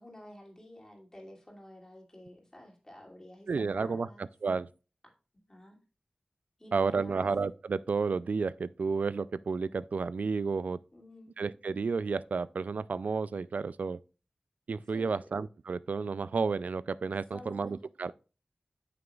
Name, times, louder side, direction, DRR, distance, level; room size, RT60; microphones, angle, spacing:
voice 1, 0.0-4.3 5.5-5.8 6.6-7.3 10.9-11.5 14.9-15.2 17.3-17.8, left 1 dB, 25° left, 2.7 m, -51 dB
voice 2, 3.5-4.7 6.7-10.8 11.4-14.0 14.7-18.1, right 4 dB, 80° right, 0.3 m, -31 dB
8.9 x 6.7 x 2.4 m
wide cardioid pair, 75°, 3 cm